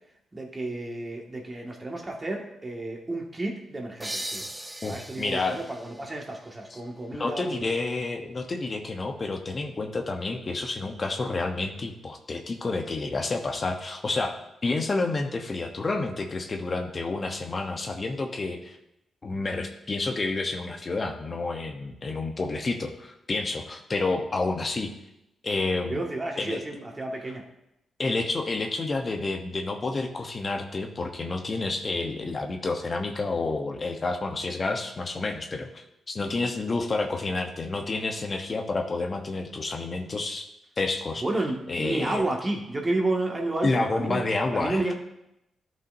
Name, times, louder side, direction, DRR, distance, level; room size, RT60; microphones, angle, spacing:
voice 1, 0.3-4.5 4.9-7.7 7.9-8.0 25.9-27.4 41.2-44.3 44.5-44.9, right 2 dB, 30° right, 0 dB, 2.0 m, -31 dB
sound 1, 4.0-7.4, right 1 dB, 15° right, 0.7 m, -39 dB
voice 2, 4.8-5.6 6.7-6.8 7.1-18.8 19.2-24.9 25.4-26.0 26.4-26.6 28.0-40.4 40.8-41.2 41.7-42.2 43.6-44.9, left 3 dB, 45° left, 4 dB, 1.1 m, -29 dB
13.0 x 5.5 x 2.8 m, 0.86 s
hypercardioid pair, 40°, 0 cm